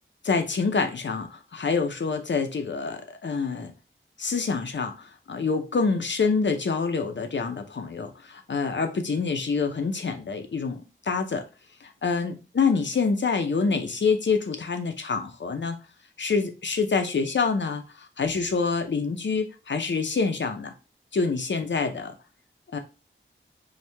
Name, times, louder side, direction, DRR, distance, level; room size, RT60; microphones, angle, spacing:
voice 1, 0.2-3.7 4.2-11.4 11.8-15.8 16.2-20.7 21.1-22.1 22.7-22.8, left 4 dB, 60° left, 0.7 m, -26 dB
4.5 x 2.4 x 3.4 m
wide cardioid pair, 65°, 21 cm